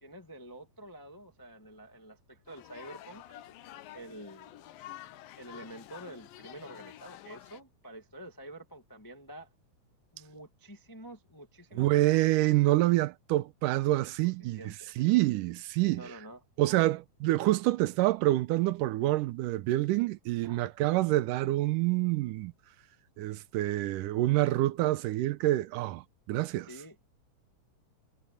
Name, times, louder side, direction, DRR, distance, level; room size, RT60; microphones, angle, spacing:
voice 1, 0.0-3.4 3.9-4.7 5.4-9.5 10.1-11.9 14.6-14.9 15.8-16.4 20.4-20.7 26.6-27.0, right 1 dB, 15° left, 0.6 m, -48 dB
sound 1, 2.5-7.6, left 13 dB, 85° left, 2.7 m, -49 dB
voice 2, 11.7-14.6 15.0-16.1 16.6-22.5 23.2-26.7, right 17 dB, 75° right, 2.2 m, -27 dB
omnidirectional pair, 4.0 m